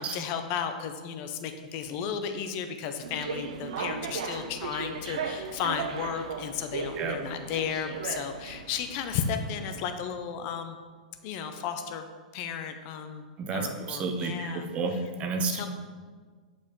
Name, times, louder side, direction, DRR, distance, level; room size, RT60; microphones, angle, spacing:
voice 1, 0.0-10.8 11.2-12.1 12.3-13.2 13.5-14.7 15.4-15.7, left 7 dB, 40° left, 7 dB, 0.6 m, -34 dB
sound 1, 3.0-9.8, right 5 dB, 60° right, 0.7 m, -37 dB
voice 2, 13.4-15.7, right 3 dB, 30° right, 5 dB, 0.9 m, -31 dB
9.4 x 5.0 x 3.7 m, 1.5 s
figure-of-eight pair, 105°, 4 cm